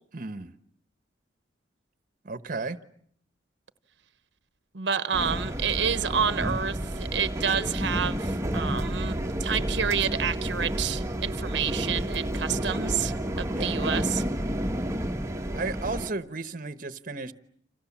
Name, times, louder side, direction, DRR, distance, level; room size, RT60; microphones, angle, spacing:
voice 1, 0.1-0.5 2.2-2.8 13.5-13.8 15.5-17.3, right 3 dB, 45° right, 1.2 m, -34 dB
voice 2, 4.7-14.2, right 7 dB, 65° right, 1.1 m, -29 dB
sound 1, 5.1-16.1, right 1 dB, 15° right, 1.2 m, -30 dB
30.0 x 27.5 x 7.4 m
head